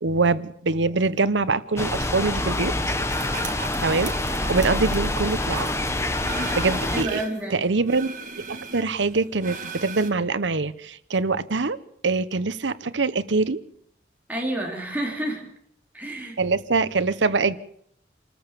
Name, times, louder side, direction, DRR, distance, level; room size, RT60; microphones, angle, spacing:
voice 1, 0.0-2.7 3.8-4.1 4.5-5.7 6.3-7.2 7.5-11.8 12.0-13.6 16.4-17.6, right 3 dB, 85° right, 15 dB, 0.9 m, -24 dB
sound 1, 1.8-7.0, left 1 dB, 15° left, 1.1 m, -26 dB
sound 2, 3.1-7.4 7.8-10.1, right 4 dB, 45° right, 2.2 m, -38 dB
voice 2, 6.9-7.6 14.3-15.4 15.9-16.4, right 1 dB, 10° right, -1 dB, 3.8 m, -29 dB
27.5 x 14.0 x 6.9 m, 0.70 s
head